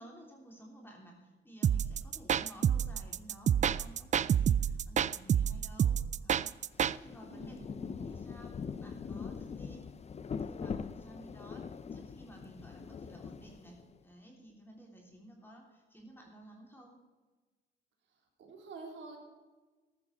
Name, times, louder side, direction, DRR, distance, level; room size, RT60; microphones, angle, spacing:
voice 1, 0.0-7.6 8.0-9.9 10.4-17.0, right 1 dB, 10° left, -1 dB, 3.2 m, -54 dB
sound 1, 1.6-7.0, right 9 dB, 40° right, 0.4 m, -28 dB
Rain, 6.7-14.0, left 6 dB, 35° left, 0.6 m, -42 dB
voice 2, 7.3-8.2 18.1-19.2, right 3 dB, 70° right, 1 dB, 3.7 m, -49 dB
13.5 x 12.5 x 4.3 m, 1.3 s
cardioid pair, 90°, 20 cm